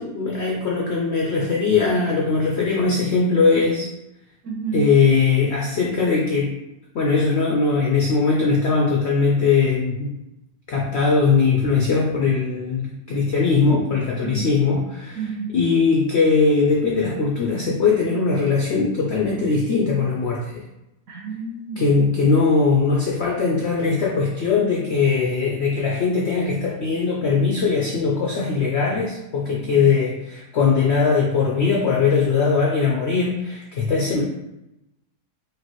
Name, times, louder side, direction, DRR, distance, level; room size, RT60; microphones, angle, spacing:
voice 1, 0.0-3.9 4.7-6.5 6.9-10.1 10.7-15.2 15.5-20.6 21.8-34.2, left 4 dB, 70° left, -2 dB, 0.6 m, -20 dB
voice 2, 4.4-4.9 14.2-14.5 15.1-15.6 21.1-22.4 29.6-29.9, right 5 dB, 60° right, -2 dB, 1.0 m, -31 dB
4.8 x 2.7 x 3.0 m, 0.92 s
omnidirectional pair, 1.8 m